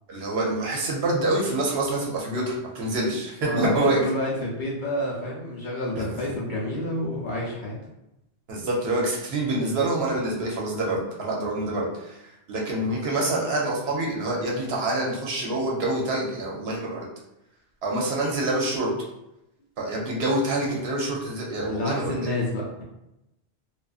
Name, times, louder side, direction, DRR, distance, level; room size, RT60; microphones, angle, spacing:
voice 1, 0.1-4.0 6.0-6.2 8.5-12.2 12.5-17.1 17.8-18.9 19.8-22.3, right 2 dB, 70° right, -2 dB, 0.8 m, -26 dB
voice 2, 3.4-7.8 21.6-22.8, left 1 dB, 55° left, -5 dB, 0.6 m, -29 dB
2.3 x 2.3 x 2.3 m, 0.89 s
omnidirectional pair, 1.1 m